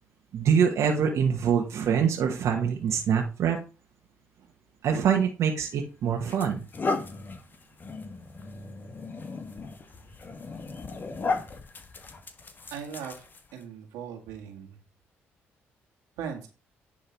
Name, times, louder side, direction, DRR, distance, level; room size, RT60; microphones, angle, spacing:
voice 1, 0.3-3.6 4.8-6.6, right 7 dB, 70° right, 1 dB, 1.4 m, -24 dB
sound 1, 5.5-5.6 6.2-13.6, left 3 dB, 40° left, 1.5 m, -35 dB
voice 2, 12.7-13.3 13.5-14.8 16.2-16.5, right 7 dB, 90° right, 2 dB, 1.9 m, -38 dB
10.0 x 3.7 x 4.6 m, 0.32 s
supercardioid pair, 65°, 5 cm